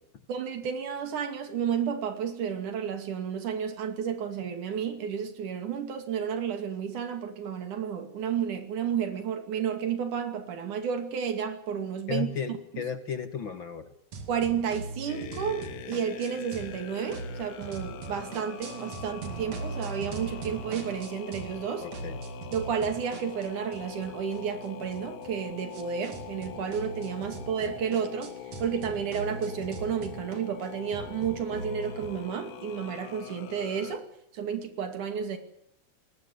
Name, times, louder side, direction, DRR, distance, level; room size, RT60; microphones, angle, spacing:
voice 1, 0.3-12.8 14.3-21.9 22.5-28.3 28.6-34.1 34.3-35.4, right 7 dB, 90° right, 3.9 m, -32 dB
voice 2, 12.1-13.9 21.8-22.2, left 6 dB, 50° left, 1.7 m, -34 dB
sound 1, 14.1-16.8 17.1-21.6 21.9-32.1, right 4 dB, 65° right, 3.5 m, -41 dB
sound 2, 15.1-34.0, left 10 dB, 85° left, 2.6 m, -44 dB
21.0 x 19.5 x 9.5 m
omnidirectional pair, 3.5 m